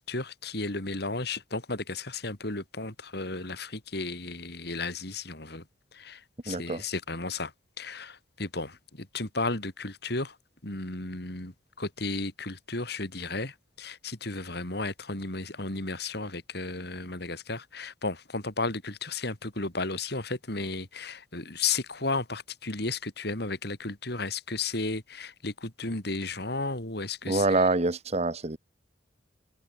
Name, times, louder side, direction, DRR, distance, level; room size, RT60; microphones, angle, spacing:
voice 1, 0.0-5.6 5.9-7.5 7.8-10.4 10.6-27.7, left 3 dB, 60° left, 3.8 m, -34 dB
voice 2, 6.5-6.8 27.3-28.6, right 2 dB, 35° right, 1.1 m, -26 dB
head